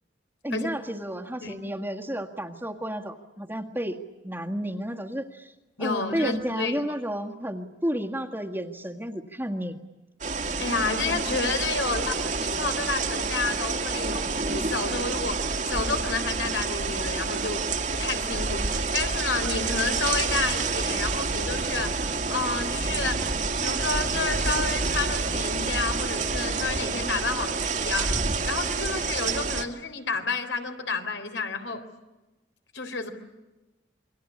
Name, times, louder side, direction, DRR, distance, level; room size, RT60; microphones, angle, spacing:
voice 1, 0.4-4.0 4.2-5.5 5.8-9.8, equal, 10° right, 3 dB, 1.7 m, -31 dB
voice 2, 5.8-6.8 10.6-17.7 18.0-23.3 23.6-28.2 28.4-31.9 32.7-33.1, left 4 dB, 75° left, 6 dB, 3.8 m, -30 dB
sound 1, 10.2-29.7, right 4 dB, 40° right, 1.9 m, -28 dB
28.5 x 23.0 x 8.5 m, 1.1 s
head